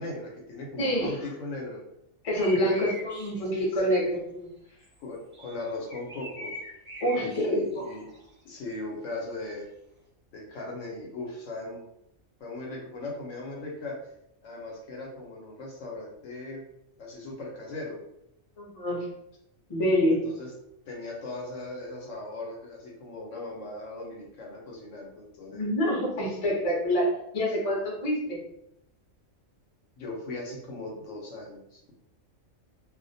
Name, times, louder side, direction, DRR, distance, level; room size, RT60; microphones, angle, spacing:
voice 1, 0.0-1.8 2.6-2.9 3.7-4.1 5.0-6.5 7.2-8.0 8.4-9.6 10.3-11.8 12.4-14.0 14.4-16.6 17.0-18.0 20.2-20.5 20.9-25.6 30.0-31.9, left 2 dB, 70° left, -2 dB, 0.9 m, -38 dB
voice 2, 0.8-1.2 2.2-4.5 7.0-7.9 18.6-19.0 19.7-20.2 25.5-28.4, equal, 35° left, -3 dB, 0.6 m, -26 dB
sound 1, 2.3-3.6 4.8-5.0 5.3-7.5 7.7-8.3, equal, 15° right, 0.3 m, -42 dB
2.4 x 2.1 x 2.6 m, 0.79 s
omnidirectional pair, 1.4 m